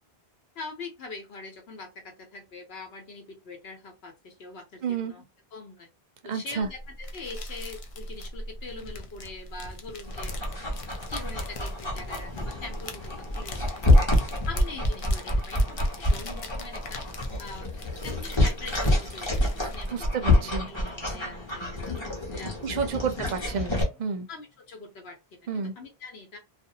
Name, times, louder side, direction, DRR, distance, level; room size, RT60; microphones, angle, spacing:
voice 1, 0.5-5.2 5.5-5.9 6.2-10.4 11.1-13.8 14.4-17.0 17.4-17.7 18.0-19.4 19.7-20.0 20.7-22.0 22.3-23.0 24.3-26.4, left 3 dB, 80° left, 1.0 m, -43 dB
voice 2, 4.8-5.1 6.3-6.7 19.9-20.7 22.6-24.3 25.5-25.7, right 6 dB, 55° right, 0.6 m, -30 dB
sound 1, 6.6-20.2, left 1 dB, 55° left, 0.4 m, -40 dB
Dog, 10.0-23.8, left 1 dB, 30° left, 0.9 m, -27 dB
sound 2, 20.2-24.2, equal, ahead, 0.6 m, -47 dB
2.6 x 2.1 x 2.7 m
omnidirectional pair, 1.1 m